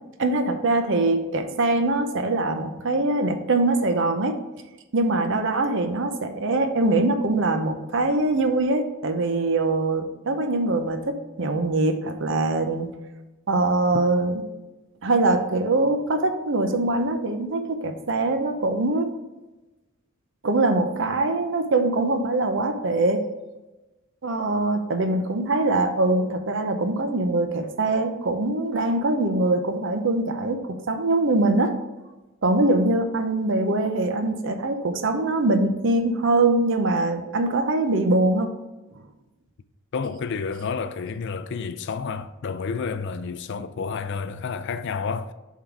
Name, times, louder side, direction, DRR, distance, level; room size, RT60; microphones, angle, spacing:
voice 1, 0.2-4.4 4.9-13.0 13.5-14.4 15.0-19.1 20.4-23.2 24.2-30.6 30.9-31.7 32.4-38.5, right 2 dB, 60° right, 0.7 m, -23 dB
voice 2, 39.9-45.3, left 5 dB, 55° left, 0.4 m, -30 dB
7.3 x 3.8 x 4.6 m
head